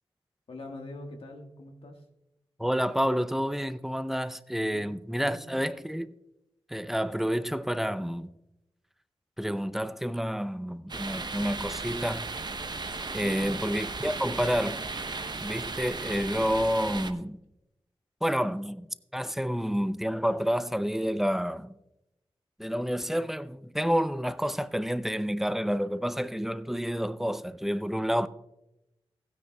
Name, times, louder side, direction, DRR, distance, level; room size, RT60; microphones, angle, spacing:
voice 1, 0.5-2.0 4.7-5.6 13.2-13.6, left 2 dB, 70° left, 1.6 m, -43 dB
voice 2, 2.6-6.1 6.7-8.3 9.4-12.3 13.1-14.8 15.4-17.4 18.2-21.7 22.6-28.3, equal, 5° right, 0.5 m, -29 dB
sound 1, 10.9-17.1, right 3 dB, 45° right, 0.8 m, -36 dB
16.0 x 9.5 x 2.3 m
cardioid pair, 60°, 10 cm